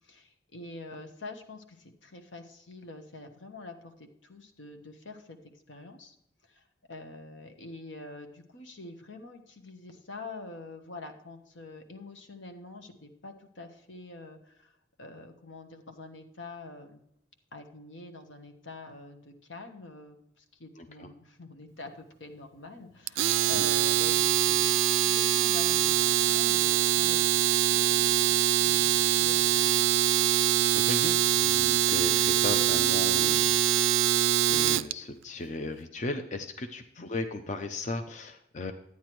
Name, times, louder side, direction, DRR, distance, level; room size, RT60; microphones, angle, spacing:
voice 1, 0.0-6.2 6.4-17.0 17.5-24.6 24.9-29.9 37.0-37.1, left 2 dB, 85° left, 5 dB, 1.2 m, -46 dB
Domestic sounds home sounds, 23.1-34.9, right 12 dB, 90° right, 0.3 m, -24 dB
voice 2, 30.9-33.6 34.4-38.7, left 2 dB, 40° left, 7 dB, 0.5 m, -36 dB
11.5 x 9.2 x 3.1 m, 0.78 s
head